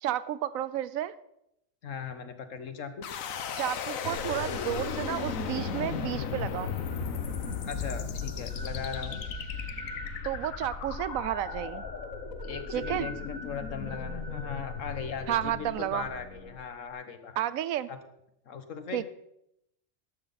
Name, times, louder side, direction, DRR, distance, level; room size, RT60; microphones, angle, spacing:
voice 1, 0.0-1.1 3.6-6.7 10.2-11.9 12.7-13.1 15.3-16.1 17.4-17.9 18.9-19.1, right 12 dB, 85° right, 16 dB, 1.0 m, -31 dB
voice 2, 1.8-3.1 7.7-9.2 12.4-17.4 17.9-18.0 18.5-19.1, left 6 dB, 70° left, 9 dB, 1.5 m, -38 dB
sound 1, 3.0-16.0, left 8 dB, 90° left, 1.3 m, -37 dB
sound 2, 4.0-16.5, equal, 70° right, 5.9 m, -41 dB
13.0 x 11.5 x 4.1 m, 0.81 s
omnidirectional pair, 1.4 m